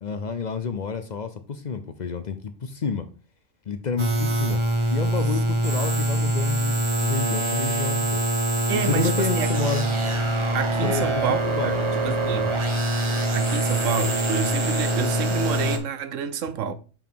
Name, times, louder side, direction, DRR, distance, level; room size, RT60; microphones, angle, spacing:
voice 1, 0.0-3.1 3.7-4.6 4.9-8.2 8.7-9.9 10.8-11.7 12.3-12.5, left 5 dB, 50° left, 0.6 m, -29 dB
sound 1, 4.0-15.8, right 1 dB, 25° right, 0.8 m, -24 dB
voice 2, 8.7-9.5 10.5-12.6 13.3-16.7, right 7 dB, 75° right, 1.1 m, -28 dB
5.5 x 5.0 x 4.5 m
omnidirectional pair, 1.3 m